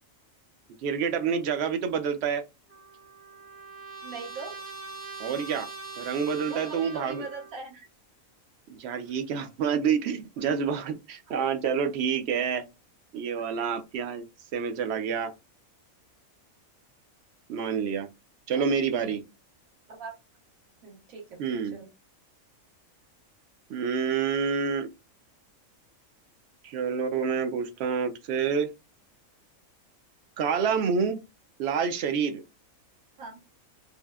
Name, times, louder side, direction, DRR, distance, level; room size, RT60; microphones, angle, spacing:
voice 1, 0.8-2.4 5.2-5.7 6.0-7.2 8.7-12.6 13.1-14.2 14.5-15.3 17.5-18.1 18.5-19.2 21.4-21.8 23.7-24.9 26.6-28.7 30.4-31.2 31.6-32.4, right 6 dB, 65° right, 0.7 m, -28 dB
Trumpet, 2.7-7.6, right 4 dB, 20° right, 0.3 m, -42 dB
voice 2, 4.0-4.6 6.5-7.9 11.3-11.4 18.5-19.1 19.9-20.1 20.8-21.9 33.2-33.4, right 4 dB, 85° right, 1.4 m, -42 dB
3.3 x 2.0 x 2.2 m
omnidirectional pair, 1.4 m